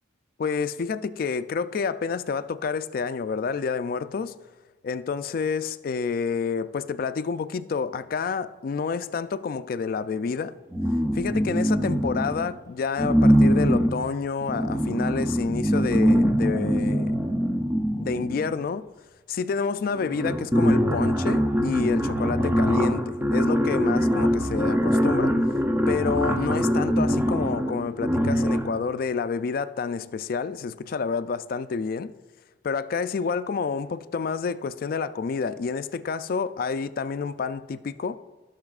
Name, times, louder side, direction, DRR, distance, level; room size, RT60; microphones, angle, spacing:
voice 1, 0.4-4.3 4.8-10.6 11.1-17.2 18.0-18.9 19.3-25.4 25.9-32.1 32.6-38.2, left 5 dB, 50° left, 0.3 m, -29 dB
sound 1, 10.7-12.5 13.0-18.6 19.6-19.7 19.9-28.8, equal, 10° right, 0.5 m, -23 dB
16.5 x 6.0 x 2.4 m
head